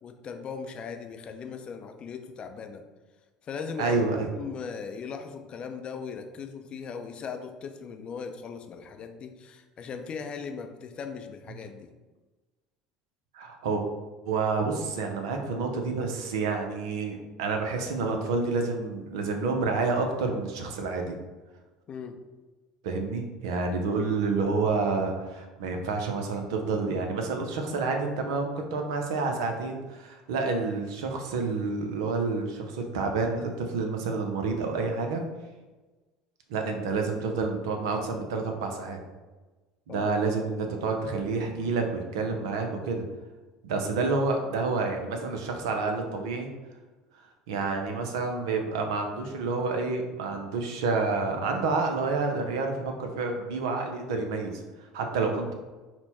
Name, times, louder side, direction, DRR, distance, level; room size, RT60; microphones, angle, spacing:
voice 1, 0.0-2.8 3.4-4.0 4.4-11.9 21.9-22.2 39.9-40.1, left 6 dB, 40° left, 6 dB, 0.5 m, -38 dB
voice 2, 3.8-4.3 13.3-13.8 14.3-21.2 22.8-35.2 36.5-39.0 39.9-43.0 43.6-46.5 47.5-54.6 54.9-55.5, right 4 dB, 75° right, 4 dB, 0.6 m, -29 dB
4.2 x 2.2 x 4.1 m, 1.2 s
hypercardioid pair, 75°, 3 cm